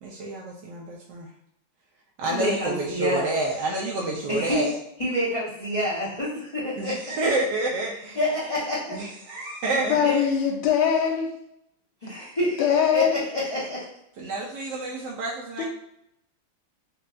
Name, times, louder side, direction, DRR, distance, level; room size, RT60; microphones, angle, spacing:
voice 1, 0.0-1.3 2.2-4.7 6.8-8.2 8.9-10.2 14.2-15.6, right 2 dB, 75° right, -2 dB, 0.9 m, -29 dB
voice 2, 2.3-3.3 4.3-4.6 5.0-7.2 8.1-9.0 9.8-10.2 12.0-13.0 13.3-13.9, left 1 dB, 45° left, -10 dB, 0.4 m, -28 dB
voice 3, 9.9-11.3 12.6-13.2 15.6-15.7, left 8 dB, 80° left, 1 dB, 1.4 m, -22 dB
4.1 x 2.2 x 2.4 m, 0.78 s
omnidirectional pair, 2.3 m